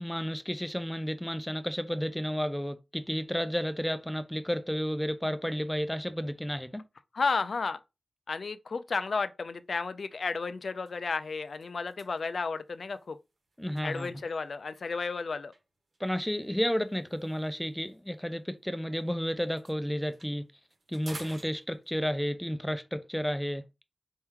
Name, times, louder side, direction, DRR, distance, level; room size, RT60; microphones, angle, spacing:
voice 1, 0.0-6.8 13.6-14.1 16.0-20.5 20.9-23.6, equal, 5° left, 0.4 m, -32 dB
voice 2, 7.1-7.8 8.3-13.2 13.8-15.5, left 4 dB, 70° left, 0.4 m, -32 dB
sound 1, 9.6-9.8 10.2-10.4 10.7-14.7 15.5-19.1 19.4-22.2, right 2 dB, 75° right, 1.5 m, -53 dB
4.4 x 2.9 x 3.6 m
wide cardioid pair, 95°, 0 cm